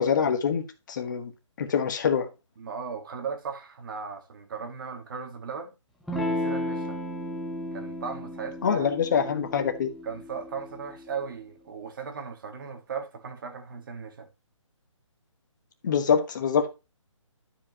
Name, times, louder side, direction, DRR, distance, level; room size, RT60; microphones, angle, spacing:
voice 1, 0.0-1.3 1.6-2.3 8.6-9.9 15.8-16.7, left 7 dB, 35° left, 1.4 m, -25 dB
voice 2, 2.6-5.7 6.3-7.0 7.7-8.9 10.0-14.3, right 6 dB, 40° right, 1.6 m, -37 dB
Electric guitar / Strum, 6.1-11.2, left 1 dB, ahead, 0.7 m, -34 dB
12.0 x 5.1 x 3.0 m
hypercardioid pair, 165°, 17 cm